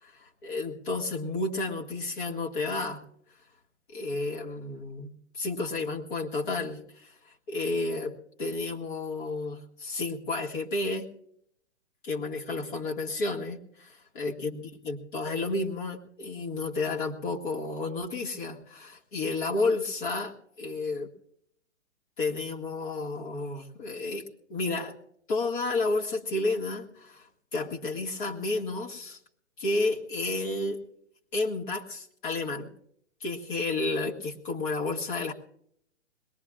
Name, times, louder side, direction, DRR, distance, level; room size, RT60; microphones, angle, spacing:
voice 1, 0.0-3.0 3.9-11.1 12.0-21.1 22.2-24.2 24.5-25.0 25.3-27.3 27.5-29.2 29.6-30.8 31.3-32.7 33.2-35.3, left 3 dB, 40° left, -1 dB, 2.0 m, -31 dB
22.0 x 19.5 x 2.5 m, 0.68 s
figure-of-eight pair, 130°, 37 cm